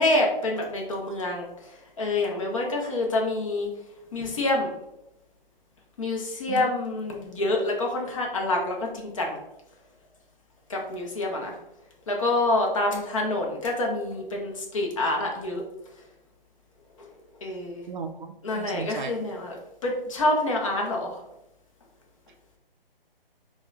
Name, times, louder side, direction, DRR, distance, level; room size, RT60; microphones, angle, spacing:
voice 1, 0.0-3.7 4.1-4.7 6.0-9.4 10.7-11.5 12.1-15.6 17.0-17.1 17.4-17.8 18.4-21.2, left 2 dB, 35° left, 0 dB, 0.6 m, -27 dB
voice 2, 17.9-19.1, right 6 dB, 55° right, 6 dB, 0.4 m, -35 dB
4.5 x 2.1 x 2.3 m, 0.88 s
hypercardioid pair, 155°, 29 cm